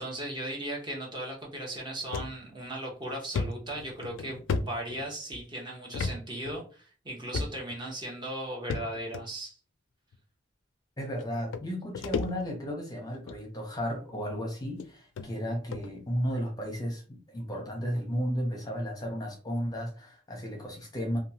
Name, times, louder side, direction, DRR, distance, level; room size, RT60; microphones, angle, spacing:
voice 1, 0.0-9.6, right 1 dB, 25° right, 0.9 m, -37 dB
sound 1, 2.1-2.3 2.8-2.9 3.3-5.4 5.9-6.2 6.4-6.6 7.3-7.8 8.7-9.2 10.1-10.2 11.2-11.3 11.5-12.7 13.1-13.4 14.2-14.3 14.8-14.9 15.2-15.3 15.7-15.9, left 4 dB, 90° left, 0.3 m, -33 dB
voice 2, 11.0-21.2, equal, 20° left, 0.7 m, -34 dB
2.9 x 2.2 x 2.7 m
head